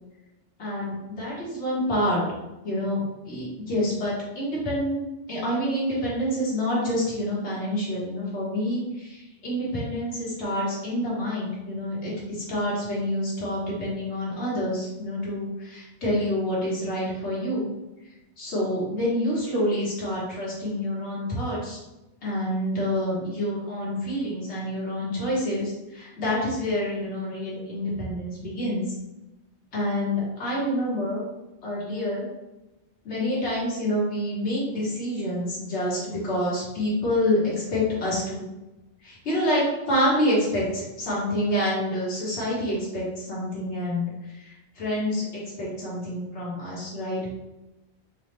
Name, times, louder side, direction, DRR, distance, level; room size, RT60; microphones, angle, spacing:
voice 1, 0.6-2.2 2.6-17.7 18.4-21.8 22.2-28.8 29.7-31.3 31.6-32.2 33.0-38.4 39.0-44.1 44.3-47.3, left 1 dB, 90° left, -7 dB, 1.5 m, -27 dB
4.0 x 2.0 x 3.2 m, 1.0 s
omnidirectional pair, 1.1 m